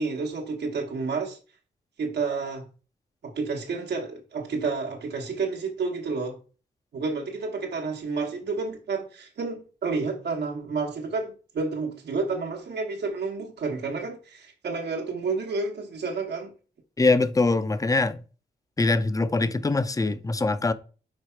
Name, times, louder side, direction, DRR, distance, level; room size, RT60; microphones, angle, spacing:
voice 1, 0.0-1.4 2.0-2.6 3.2-6.4 6.9-16.5, right 4 dB, 75° right, 1.1 m, -30 dB
voice 2, 17.0-18.2 18.8-20.7, left 3 dB, 20° left, 0.6 m, -23 dB
4.9 x 4.7 x 4.4 m
cardioid pair, 80°, 17 cm